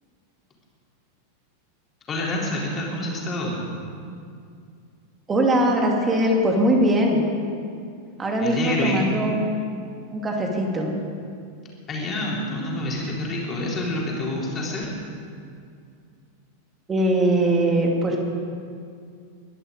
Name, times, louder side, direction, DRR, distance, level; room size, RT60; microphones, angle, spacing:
voice 1, 2.1-3.6 8.4-9.1 11.9-14.9, left 1 dB, 25° left, -3 dB, 3.9 m, -27 dB
voice 2, 5.3-7.2 8.2-9.6 10.1-10.9 16.9-18.2, right 1 dB, 20° right, 1 dB, 2.6 m, -21 dB
22.0 x 11.0 x 5.2 m, 2.3 s
figure-of-eight pair, 90°, 0 cm